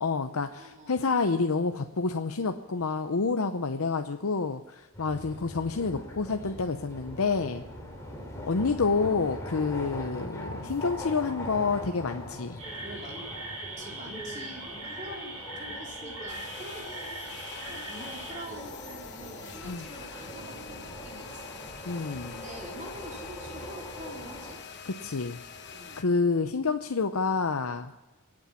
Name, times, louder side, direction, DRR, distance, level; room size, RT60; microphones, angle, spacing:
voice 1, 0.0-7.6 8.5-12.6 19.6-19.8 21.9-22.3 24.9-25.4 26.0-27.9, left 4 dB, 75° left, 7 dB, 0.7 m, -28 dB
voice 2, 0.6-0.9 5.1-5.4 12.8-13.2 13.8-21.6 22.3-24.6 25.7-26.0, equal, 35° right, -1 dB, 3.8 m, -45 dB
sound 1, 4.9-24.5, equal, 15° left, 2.9 m, -42 dB
sound 2, 12.6-18.4, right 2 dB, 80° right, 5.4 m, -41 dB
sound 3, 16.3-26.0, left 6 dB, 50° left, 1.1 m, -45 dB
24.5 x 8.9 x 5.7 m, 1.1 s
head